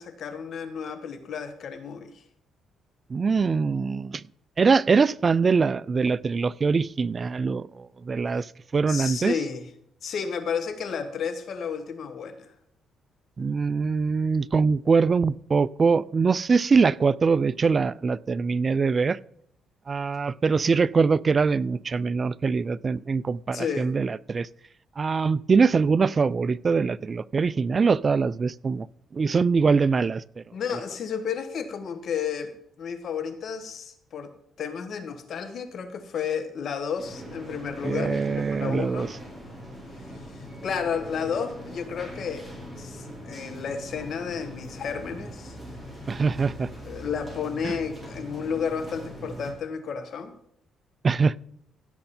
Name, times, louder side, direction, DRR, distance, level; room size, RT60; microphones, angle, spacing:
voice 1, 0.0-2.2 8.9-9.7 10.0-12.5 23.5-23.9 30.5-32.5 32.8-34.3 34.6-39.1 40.1-45.6 46.8-50.3, left 6 dB, 60° left, 1.5 m, -32 dB
voice 2, 3.1-4.2 4.6-9.3 13.4-19.2 19.9-24.5 25.0-28.9 29.1-30.4 37.8-39.1 46.1-46.7 47.6-47.7 51.0-51.4, right 5 dB, 35° right, 0.3 m, -23 dB
sound 1, 37.0-49.5, equal, ahead, 4.6 m, -41 dB
16.0 x 6.5 x 4.3 m
cardioid pair, 90°, 0 cm